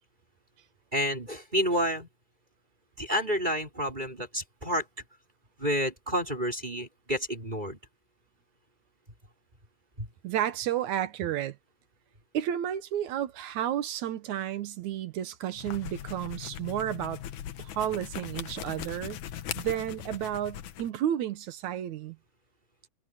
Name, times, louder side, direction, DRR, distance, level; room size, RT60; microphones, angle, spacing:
voice 1, 0.9-2.1 3.0-4.9 5.6-7.8 10.0-10.1, equal, 15° right, 5.5 m, -29 dB
voice 2, 10.2-11.6 12.3-17.2 17.6-19.2 19.6-22.2, right 11 dB, 70° right, 2.3 m, -32 dB
sound 1, 15.5-20.9, left 11 dB, 70° left, 2.5 m, -40 dB
omnidirectional pair, 3.7 m